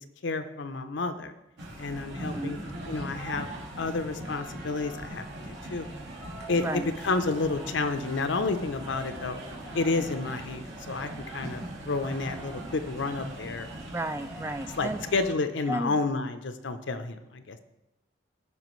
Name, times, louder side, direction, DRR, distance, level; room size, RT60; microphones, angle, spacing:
voice 1, 0.2-1.3 1.8-2.6 2.9-3.5 3.8-5.9 6.5-9.4 9.7-13.7 14.7-17.6, left 3 dB, 70° left, 9 dB, 0.6 m, -30 dB
sound 1, 1.6-15.3, right 1 dB, 65° right, 1.8 m, -40 dB
voice 2, 2.2-2.6 6.5-6.9 13.9-15.0 15.7-16.0, right 1 dB, 15° right, 10 dB, 0.3 m, -33 dB
15.0 x 5.0 x 3.1 m, 0.94 s
head